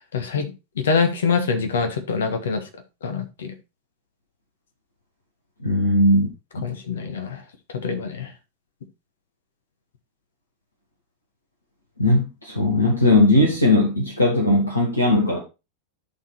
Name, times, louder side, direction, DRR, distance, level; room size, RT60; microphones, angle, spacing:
voice 1, 0.1-2.6 3.0-3.5 6.6-7.4 7.8-8.3, left 5 dB, 65° left, 1.7 m, -24 dB
voice 2, 5.6-6.3 6.5-6.7 12.0-15.4, left 1 dB, 80° left, 2.3 m, -18 dB
11.0 x 4.3 x 4.1 m
figure-of-eight pair, 90°, 0 cm